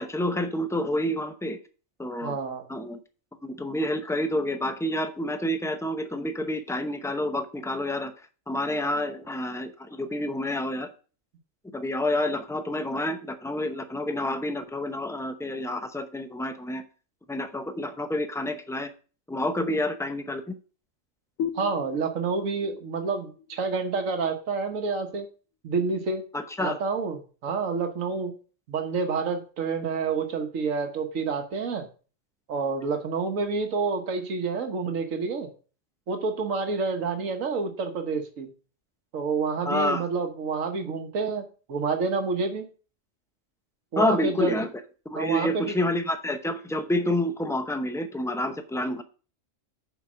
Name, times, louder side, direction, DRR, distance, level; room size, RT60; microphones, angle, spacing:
voice 1, 0.0-1.6 2.0-2.4 2.7-3.0 3.4-8.1 8.5-10.9 11.7-16.8 17.3-18.9 19.3-20.4 26.3-26.8 39.7-40.0 44.0-44.7 45.1-49.0, left 1 dB, 5° left, 8 dB, 0.4 m, -28 dB
voice 2, 2.2-2.7 21.5-25.3 25.6-26.2 26.6-28.3 28.7-31.9 32.5-35.5 36.1-38.5 39.1-42.7 43.9-44.6 45.1-45.8, right 4 dB, 85° right, 6 dB, 1.5 m, -28 dB
sound 1, 21.4-24.8, left 8 dB, 80° left, 1.0 m, -38 dB
7.0 x 5.2 x 6.2 m, 0.38 s
omnidirectional pair, 1.3 m